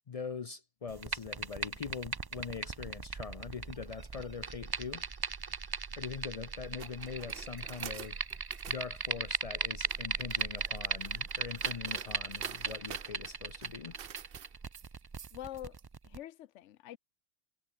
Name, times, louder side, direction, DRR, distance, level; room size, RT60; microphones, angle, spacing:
voice 1, 0.1-5.1 5.9-14.0, left 6 dB, 50° left, 0.4 m, -43 dB
sound 1, 0.9-16.2, right 4 dB, 30° right, 0.5 m, -38 dB
sound 2, 6.8-8.9 9.6-15.8, right 10 dB, 55° right, 0.8 m, -49 dB
voice 2, 15.3-15.8 16.0-17.0, left 13 dB, 75° left, 0.9 m, -45 dB
omnidirectional pair, 1.3 m